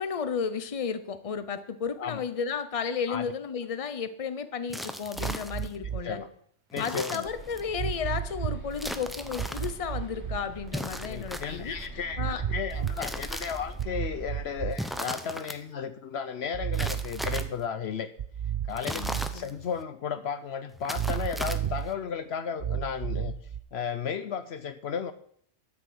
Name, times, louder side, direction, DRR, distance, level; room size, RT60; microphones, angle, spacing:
voice 1, 0.0-6.2 6.8-11.7 12.2-12.4 18.8-19.5, left 6 dB, 35° left, 11 dB, 0.8 m, -33 dB
sound 1, 4.7-5.8 6.7-7.7 8.7-9.7 10.7-11.9 12.7-13.8 14.7-15.6 16.7-17.6 18.7-19.8 20.7-21.9, equal, ahead, 0.6 m, -37 dB
sound 2, 5.2-6.1 7.7-8.7 9.4-10.4 12.1-13.1 13.8-15.0 16.5-17.5 18.2-19.4 20.9-21.9 22.6-23.6, right 9 dB, 50° right, 0.7 m, -32 dB
voice 2, 6.7-7.3 11.1-18.1 18.7-23.4 23.7-25.1, left 7 dB, 65° left, 11 dB, 0.9 m, -34 dB
sound 3, 7.2-14.6, right 1 dB, 65° right, 3.6 m, -43 dB
12.5 x 6.6 x 7.8 m, 0.64 s
omnidirectional pair, 1.2 m